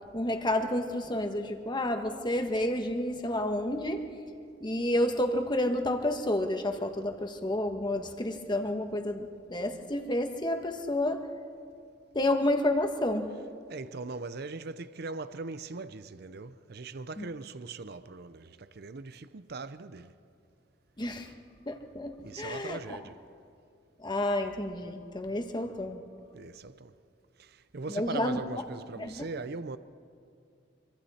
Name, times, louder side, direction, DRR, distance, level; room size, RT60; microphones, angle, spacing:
voice 1, 0.1-4.0 4.6-11.2 12.1-13.3 17.2-17.3 21.0-21.3 21.6-23.0 24.0-26.0 27.9-28.4 29.0-29.2, left 1 dB, 25° left, 1.5 m, -30 dB
voice 2, 13.7-20.1 22.2-23.2 26.3-26.9 27.4-29.8, right 3 dB, 60° right, 0.7 m, -40 dB
26.0 x 25.0 x 4.3 m
head